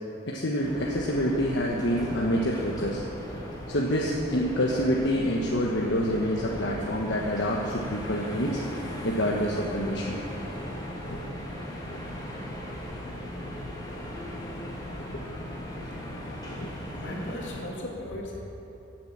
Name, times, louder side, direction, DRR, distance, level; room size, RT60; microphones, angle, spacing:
voice 1, 0.3-3.0 3.7-8.6 9.0-10.2 11.1-11.2 11.9-12.0 12.6-12.7 15.1-15.2 16.5-16.7, equal, 65° left, -2 dB, 1.3 m, -27 dB
sound 1, 0.6-17.6, equal, 20° left, 2.3 m, -38 dB
voice 2, 17.0-18.4, left 1 dB, 85° left, -2 dB, 2.9 m, -36 dB
17.0 x 7.6 x 7.5 m, 2.9 s
head